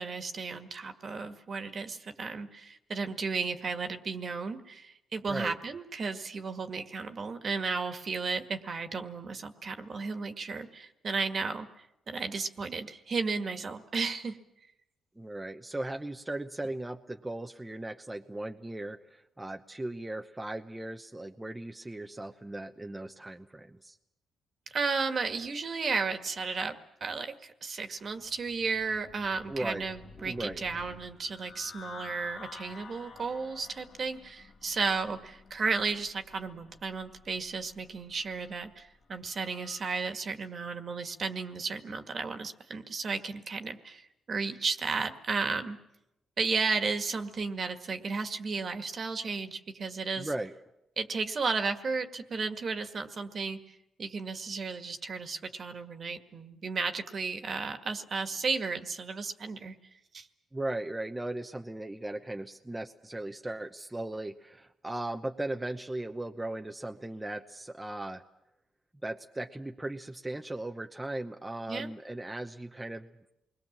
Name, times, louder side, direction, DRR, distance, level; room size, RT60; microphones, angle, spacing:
voice 1, 0.0-11.7 12.1-14.4 24.7-44.0 44.3-45.8 46.4-50.3 51.0-59.7 60.1-60.3 71.7-71.9, right 4 dB, 45° right, 7 dB, 1.9 m, -34 dB
voice 2, 5.3-5.6 15.2-24.0 29.5-29.9 30.2-30.6 50.2-50.5 60.5-68.2 69.0-73.1, right 1 dB, 10° right, 4 dB, 0.9 m, -37 dB
sound 1, 28.0-39.9, left 4 dB, 60° left, 2.2 m, -51 dB
28.0 x 21.5 x 7.4 m, 0.89 s
cardioid pair, 100°, 0 cm